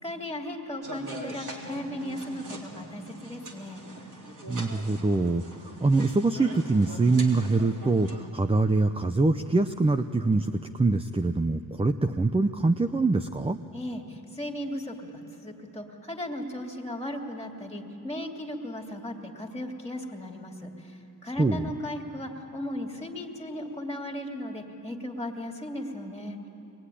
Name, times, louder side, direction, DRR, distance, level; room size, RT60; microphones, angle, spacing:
voice 1, 0.0-3.8 13.7-26.5, left 1 dB, 5° left, 1 dB, 2.7 m, -36 dB
sound 1, 0.8-8.2, right 2 dB, 45° right, 3.6 m, -42 dB
voice 2, 4.5-13.6 21.4-21.7, right 3 dB, 15° right, 10 dB, 0.7 m, -24 dB
24.5 x 21.0 x 10.0 m, 2.9 s
cardioid pair, 80°, 43 cm